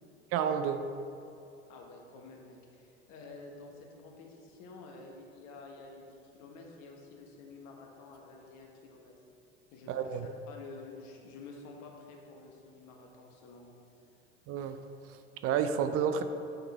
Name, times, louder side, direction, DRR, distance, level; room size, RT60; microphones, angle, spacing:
voice 1, 0.3-0.8 9.9-10.3 14.5-14.8 15.1-15.2 15.4-16.2, right 7 dB, 45° right, 9 dB, 0.5 m, -30 dB
voice 2, 1.7-9.1 9.7-10.2 10.5-13.7, left 3 dB, 55° left, 1 dB, 1.3 m, -50 dB
8.9 x 3.9 x 4.2 m, 2.7 s
hypercardioid pair, 80°, 34 cm